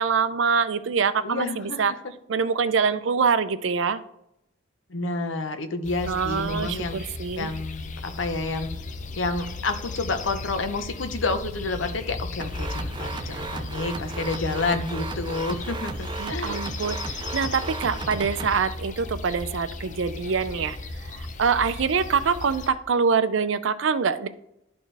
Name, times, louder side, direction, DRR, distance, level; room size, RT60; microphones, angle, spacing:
voice 1, 0.0-1.9 2.3-4.0 6.0-7.5 16.2-24.3, right 5 dB, 85° right, 12 dB, 0.5 m, -25 dB
voice 2, 1.2-1.8 4.9-7.0 7.4-8.7 9.2-16.7, left 3 dB, 85° left, 9 dB, 0.8 m, -29 dB
sound 1, 5.8-22.7, left 3 dB, 40° left, 0.6 m, -36 dB
sound 2, 12.4-18.6, right 4 dB, 25° right, 0.4 m, -35 dB
11.5 x 4.3 x 3.3 m, 0.80 s
head